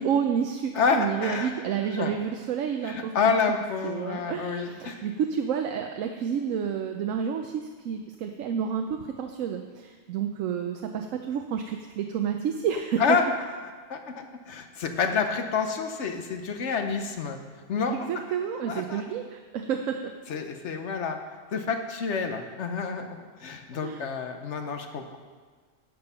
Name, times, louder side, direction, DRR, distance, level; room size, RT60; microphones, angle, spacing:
voice 1, 0.0-3.1 3.8-13.2 17.9-20.1 23.8-24.1, right 7 dB, 85° right, 5 dB, 1.0 m, -30 dB
voice 2, 0.7-1.6 2.0-2.2 2.8-5.0 13.0-13.3 13.6-17.4 17.7-18.2 18.7-19.0 20.3-21.2 21.5-25.2, left 5 dB, 65° left, 6 dB, 1.1 m, -28 dB
10.5 x 7.1 x 5.6 m, 1.5 s
omnidirectional pair, 1.3 m